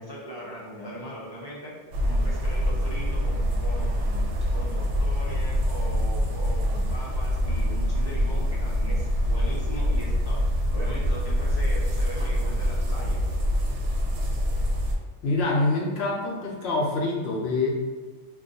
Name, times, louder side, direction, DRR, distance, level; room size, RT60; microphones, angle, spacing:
voice 1, 0.0-1.7 2.1-4.2 4.5-13.2, right 1 dB, 40° right, -8 dB, 0.3 m, -39 dB
sound 1, 1.9-14.9, equal, 70° right, 0.8 m, -25 dB
voice 2, 15.2-17.7, left 2 dB, 65° left, -2 dB, 0.8 m, -25 dB
2.6 x 2.3 x 3.8 m, 1.4 s
omnidirectional pair, 1.3 m